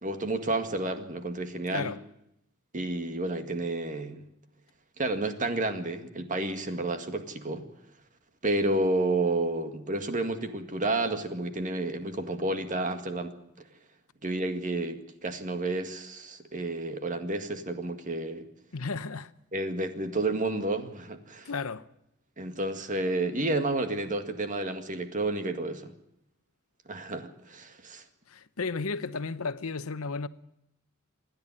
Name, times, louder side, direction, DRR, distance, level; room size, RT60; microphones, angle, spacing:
voice 1, 0.0-1.9 2.7-4.2 5.0-7.6 8.4-13.7 14.2-18.5 19.5-21.5 22.4-25.9 26.9-28.0, right 2 dB, 35° right, 1.9 m, -31 dB
voice 2, 1.7-2.0 18.7-19.3 21.4-21.9 28.3-30.3, left 4 dB, 80° left, 0.9 m, -33 dB
27.0 x 10.5 x 9.8 m
head